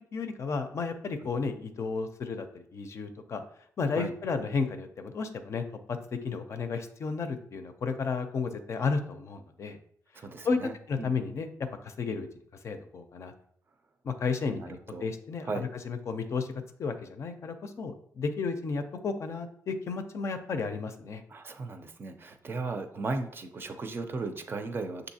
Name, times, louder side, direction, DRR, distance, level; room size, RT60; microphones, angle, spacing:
voice 1, 0.1-3.4 3.8-9.8 10.4-10.6 10.9-11.5 11.8-12.3 12.6-13.3 14.0-15.5 15.9-16.5 16.8-21.2, left 4 dB, 50° left, 7 dB, 0.5 m, -33 dB
voice 2, 10.1-11.1 14.5-15.1 15.4-15.7 21.3-25.1, right 3 dB, 35° right, 7 dB, 0.5 m, -36 dB
6.3 x 2.7 x 2.7 m, 0.62 s
cardioid pair, 100°, 6 cm